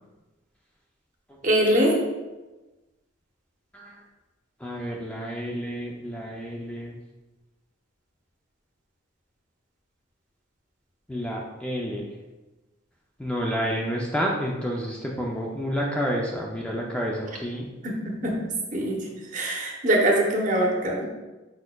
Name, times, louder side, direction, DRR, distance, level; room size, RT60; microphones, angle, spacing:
voice 1, 1.4-1.9 17.8-17.9 18.2-18.4 18.7-19.0 19.3-21.0, right 1 dB, 40° right, -1 dB, 0.8 m, -22 dB
voice 2, 4.6-7.0 11.1-12.1 13.2-17.7, equal, 5° left, -2 dB, 0.4 m, -30 dB
5.0 x 4.2 x 2.2 m, 1.1 s
head